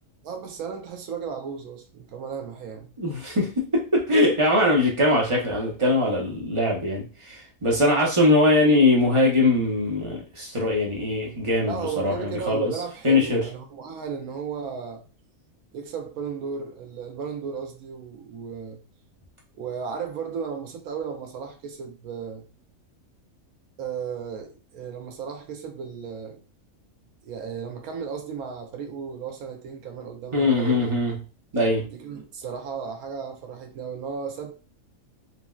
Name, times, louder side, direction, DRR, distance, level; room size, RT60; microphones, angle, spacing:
voice 1, 0.2-2.9 11.7-15.0 15.7-18.8 19.6-22.5 23.8-26.4 27.2-30.8 31.9-34.5, right 6 dB, 90° right, 1.1 m, -34 dB
voice 2, 3.0-12.7 13.0-13.4 30.3-31.2 31.5-31.8, left 2 dB, 30° right, 0.6 m, -21 dB
4.0 x 2.1 x 2.3 m
omnidirectional pair, 1.5 m